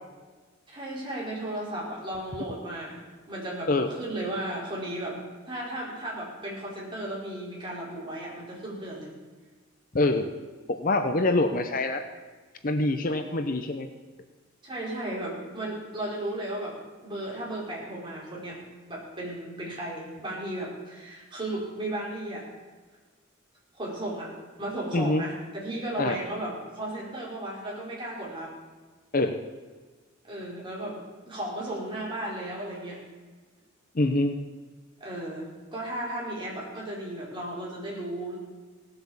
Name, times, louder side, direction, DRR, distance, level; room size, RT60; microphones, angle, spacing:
voice 1, 0.7-3.0 3.3-5.2 5.4-9.1 14.6-16.7 17.0-18.6 18.9-22.4 23.7-24.3 24.6-28.5 30.2-30.9 31.2-33.0 35.0-38.4, right 1 dB, 25° right, -5 dB, 4.6 m, -35 dB
voice 2, 9.9-10.3 10.7-12.0 12.6-13.9 24.9-25.2 26.0-26.2 29.1-29.4 33.9-34.3, left 2 dB, 40° left, 7 dB, 0.8 m, -25 dB
17.5 x 7.9 x 7.2 m, 1.4 s
head